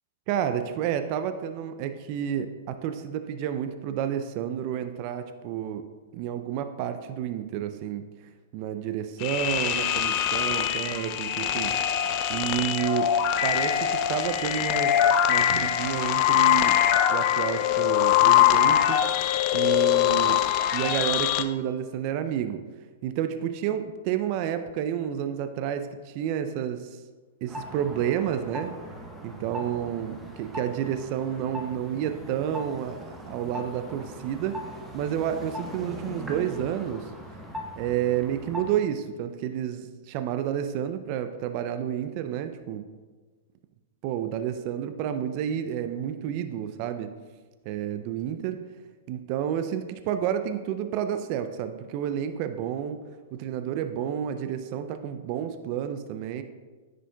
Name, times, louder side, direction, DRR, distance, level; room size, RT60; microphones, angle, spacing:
voice 1, 0.3-5.8 6.1-8.0 8.5-11.7 12.3-16.8 17.1-19.0 19.5-20.4 20.7-22.6 23.0-27.0 27.4-28.7 29.2-34.7 34.9-37.0 37.8-42.8 44.0-47.1 47.7-48.6 49.1-53.0 53.3-56.4, right 10 dB, 45° right, 9 dB, 0.4 m, -30 dB
sound 1, 9.2-21.4, left 11 dB, 45° left, 0.4 m, -23 dB
sound 2, 27.5-38.8, left 1 dB, 10° right, 0.8 m, -40 dB
10.0 x 5.0 x 2.3 m, 1.4 s
hypercardioid pair, 120°, 0 cm